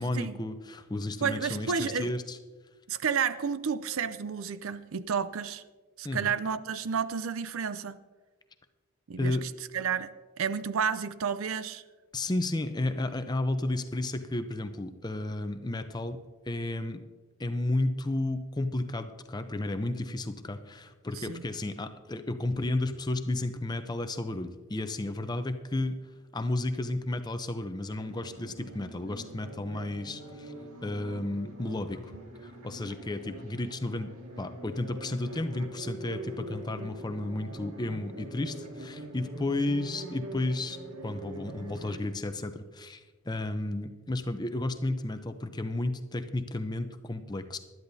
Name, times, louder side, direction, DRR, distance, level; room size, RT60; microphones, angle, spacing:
voice 1, 0.0-2.4 6.0-6.3 9.2-9.4 12.1-16.2 16.5-17.0 17.4-26.0 26.3-30.5 30.8-32.1 32.4-34.1 34.4-40.8 41.0-47.6, left 2 dB, 20° left, 8 dB, 0.6 m, -32 dB
voice 2, 1.2-2.1 2.9-5.6 6.0-8.0 9.1-10.1 10.4-11.8 21.2-21.4 39.4-39.5, right 6 dB, 65° right, 14 dB, 0.5 m, -31 dB
sound 1, 27.9-42.0, right 1 dB, 90° right, 2.0 m, -44 dB
19.5 x 12.0 x 2.7 m, 1.4 s
head